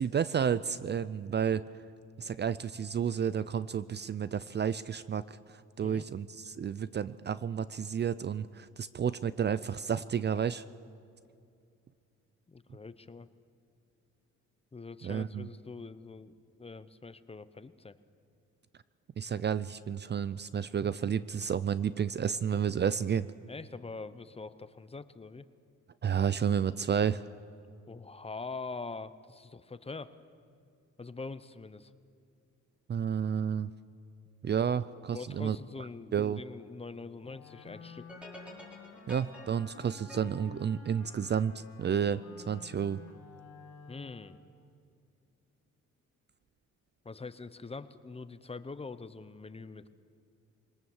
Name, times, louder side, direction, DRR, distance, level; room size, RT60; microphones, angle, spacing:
voice 1, 0.0-1.6 2.2-5.4 5.8-10.6 15.0-15.5 19.2-23.3 26.0-27.2 32.9-33.7 34.4-35.6 36.1-36.4 39.1-42.2 42.5-43.0, right 8 dB, 35° right, 16 dB, 0.5 m, -31 dB
voice 2, 12.5-13.3 14.7-18.0 23.5-25.5 27.9-30.1 31.0-31.9 35.1-38.1 43.9-44.4 47.0-49.9, left 4 dB, 20° left, 13 dB, 0.8 m, -44 dB
Wind instrument woodwind instrument, 37.2-44.6, left 5 dB, 55° left, 2.2 m, -51 dB
sound 1, 38.1-41.5, left 1 dB, 5° right, 4.9 m, -50 dB
22.5 x 19.0 x 7.2 m, 2.4 s
cardioid pair, 90°, 30 cm